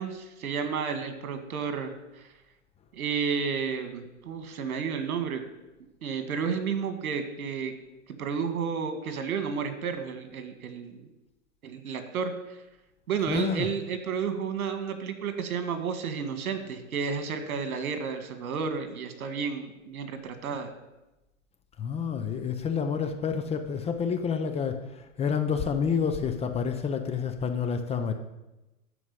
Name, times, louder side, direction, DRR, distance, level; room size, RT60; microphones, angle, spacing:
voice 1, 0.0-2.2 2.9-5.4 6.0-7.7 8.2-11.1 11.6-12.6 13.1-20.7, right 6 dB, 75° right, 8 dB, 1.9 m, -32 dB
voice 2, 13.3-13.7 21.8-28.1, left 6 dB, 15° left, 6 dB, 0.6 m, -29 dB
13.0 x 4.7 x 8.3 m, 1.0 s
hypercardioid pair, 130°, 43 cm